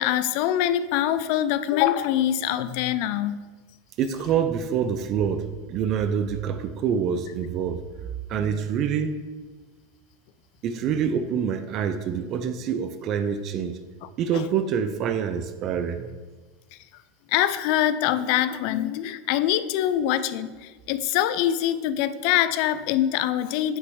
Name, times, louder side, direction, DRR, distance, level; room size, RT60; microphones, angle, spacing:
voice 1, 0.0-3.4 8.4-8.6 14.0-14.4 17.3-23.8, left 11 dB, 65° left, 14 dB, 0.4 m, -24 dB
voice 2, 4.0-7.8 8.3-9.2 10.6-13.8 14.2-16.1, right 7 dB, 45° right, 10 dB, 0.4 m, -26 dB
8.5 x 3.1 x 4.7 m, 1.3 s
supercardioid pair, 110°, 0 cm